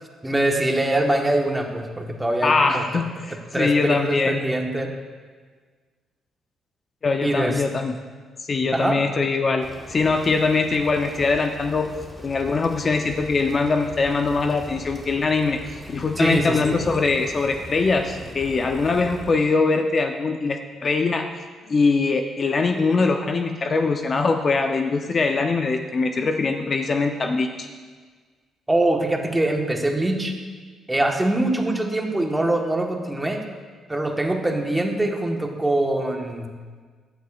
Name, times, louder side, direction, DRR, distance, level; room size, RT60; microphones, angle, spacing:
voice 1, 0.2-2.8 3.3-4.9 7.2-7.6 8.7-9.0 16.2-16.8 28.7-30.4 30.9-33.4 33.9-36.5, right 1 dB, 10° right, 2 dB, 1.2 m, -23 dB
voice 2, 2.4-4.4 7.0-7.9 8.4-11.9 12.2-15.6 15.9-21.2 21.7-27.7, left 4 dB, 40° left, 5 dB, 0.6 m, -22 dB
sound 1, 9.6-19.3, equal, 10° left, 1.2 m, -40 dB
15.5 x 9.3 x 2.4 m, 1.5 s
cardioid pair, 90°, 0 cm